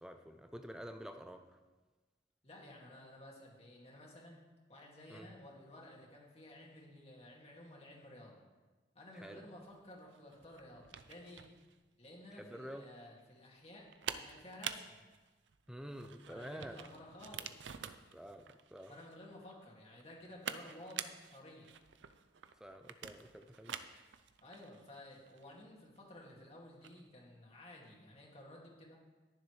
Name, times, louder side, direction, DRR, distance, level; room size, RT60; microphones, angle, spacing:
voice 1, 0.0-1.4 5.1-5.3 9.2-9.4 12.4-12.9 15.7-16.8 18.1-18.9 22.6-24.0, equal, 5° right, 6 dB, 0.5 m, -49 dB
voice 2, 2.4-4.4 4.7-8.4 8.9-11.5 12.0-15.0 16.2-17.5 18.9-21.8 24.4-29.0, left 1 dB, 35° left, -2 dB, 2.2 m, -54 dB
sound 1, 9.7-27.1, right 8 dB, 80° right, 0.5 m, -49 dB
20.0 x 7.0 x 3.2 m, 1.2 s
head